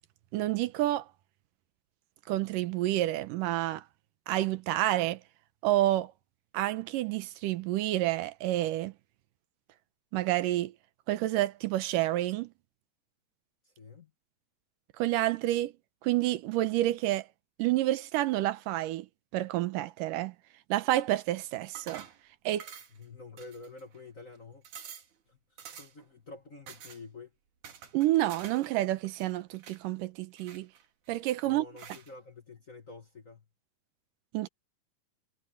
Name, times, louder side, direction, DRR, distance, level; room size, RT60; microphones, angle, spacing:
voice 1, 0.3-1.0 2.3-3.8 4.3-5.2 5.6-6.1 6.5-8.9 10.1-10.7 11.1-12.5 15.0-15.7 16.0-17.3 17.6-19.1 19.3-20.3 20.7-22.0 22.5-22.7 27.9-30.7 31.1-31.6 34.3-34.5, right 15 dB, 90° right, 2.5 m, -29 dB
voice 2, 13.6-14.1 22.9-24.6 25.3-27.3 31.4-33.5, left 3 dB, 35° left, 1.5 m, -48 dB
sound 1, 21.7-22.2 22.6-23.0 23.4-24.0 24.3-24.4 24.6-25.1 25.6-26.1 26.7-27.0 27.6-28.7 29.0-29.8 30.4-31.1 31.8-32.1, right 8 dB, 70° right, 3.8 m, -48 dB
omnidirectional pair, 3.8 m